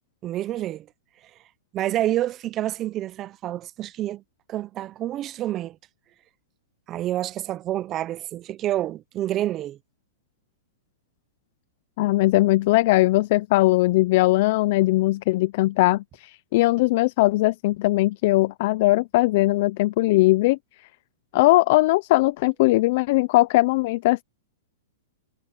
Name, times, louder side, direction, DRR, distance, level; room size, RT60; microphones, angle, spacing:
voice 1, 0.2-0.9 1.7-4.2 4.5-5.8 6.9-9.8, right 13 dB, 20° right, 0.5 m, -28 dB
voice 2, 12.0-20.6 21.3-24.2, left 19 dB, 45° left, 0.4 m, -20 dB
supercardioid pair, 165°, 0 cm